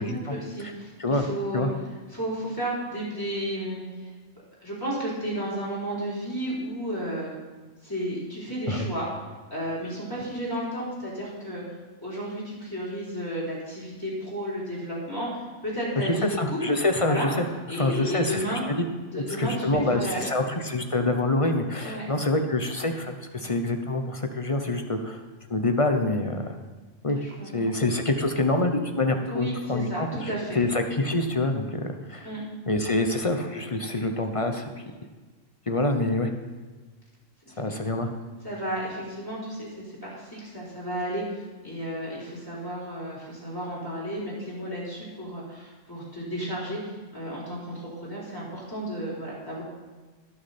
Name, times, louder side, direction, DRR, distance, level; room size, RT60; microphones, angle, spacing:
voice 1, 0.0-1.7 2.1-3.8 4.6-7.3 7.8-9.1 9.5-11.6 12.0-16.6 17.1-17.3 17.7-18.6 19.1-20.3 21.8-22.1 27.2-27.5 29.3-30.6 32.2-32.4 37.5-37.6 38.4-46.8 47.1-49.6, right 1 dB, 15° left, -7 dB, 4.2 m, -33 dB
voice 2, 16.0-17.5 17.7-18.8 19.1-25.2 25.5-26.5 27.0-27.2 27.5-32.3 32.7-34.7 35.7-36.3 37.6-38.1, left 2 dB, 30° left, 5 dB, 0.7 m, -26 dB
19.5 x 6.5 x 4.3 m, 1.3 s
omnidirectional pair, 1.3 m